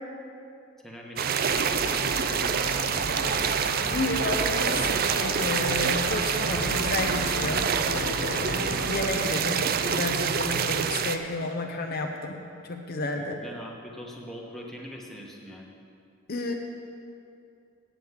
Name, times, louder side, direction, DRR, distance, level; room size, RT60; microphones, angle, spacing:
voice 1, 0.8-3.4 13.1-15.7, equal, ahead, -2 dB, 1.1 m, -42 dB
sound 1, 1.2-11.2, right 6 dB, 45° right, 0.4 m, -27 dB
sound 2, 1.5-9.3, left 1 dB, 65° left, 1.4 m, -36 dB
voice 2, 3.9-13.4 16.3-16.5, left 2 dB, 45° left, 3 dB, 0.7 m, -31 dB
8.6 x 7.6 x 8.1 m, 2.5 s
head